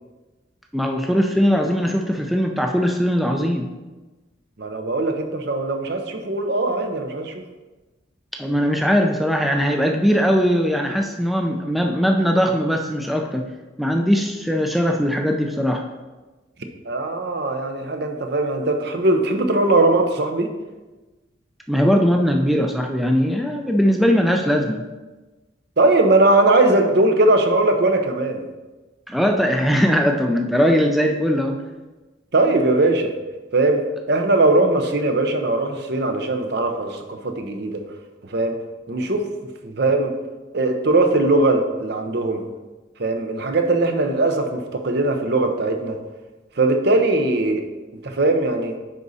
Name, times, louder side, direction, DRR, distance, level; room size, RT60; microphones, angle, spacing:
voice 1, 0.7-3.7 8.4-13.5 13.8-15.9 21.7-24.9 29.1-31.6, equal, ahead, 2 dB, 0.4 m, -20 dB
voice 2, 4.6-7.4 16.8-20.5 25.8-28.4 32.3-33.1 33.5-37.8 38.3-38.5 38.9-39.3 39.6-40.1 40.5-42.5 43.0-46.0 46.6-47.7 48.0-48.7, right 2 dB, 55° right, 5 dB, 0.8 m, -20 dB
9.9 x 4.0 x 4.1 m, 1.2 s
head